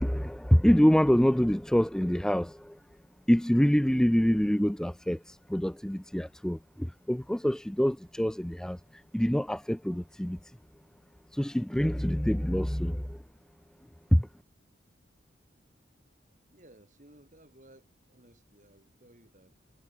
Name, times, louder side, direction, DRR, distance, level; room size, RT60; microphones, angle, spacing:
voice 1, 0.0-2.5 3.3-5.2 5.5-6.6 7.1-8.8 9.1-10.4 11.4-13.0, equal, 5° left, 0.4 m, -25 dB
voice 2, 16.3-19.6, right 1 dB, 40° right, 5.7 m, -58 dB
head